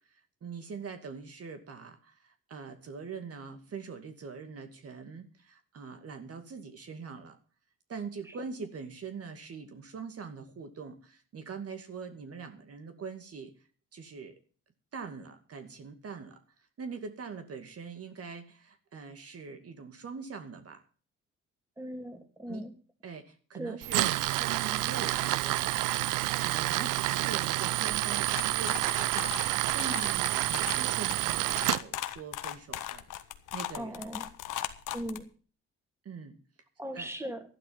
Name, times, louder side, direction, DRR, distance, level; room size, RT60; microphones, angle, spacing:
voice 1, 0.1-7.4 7.9-13.5 13.9-14.4 14.9-16.4 16.8-20.8 22.5-22.6 23.0-25.7 26.1-33.1 33.5-34.2 36.0-36.4 36.9-37.1, right 5 dB, 50° right, 7 dB, 2.3 m, -43 dB
voice 2, 21.8-22.7 23.6-23.8 33.7-34.2 34.9-35.2 36.8-37.4, right 1 dB, 10° right, 6 dB, 2.8 m, -38 dB
Tools, 23.8-31.8, right 17 dB, 90° right, 0.6 m, -29 dB
sound 1, 28.3-35.2, left 13 dB, 85° left, 1.4 m, -38 dB
12.5 x 11.5 x 5.7 m, 0.38 s
cardioid pair, 90°, 30 cm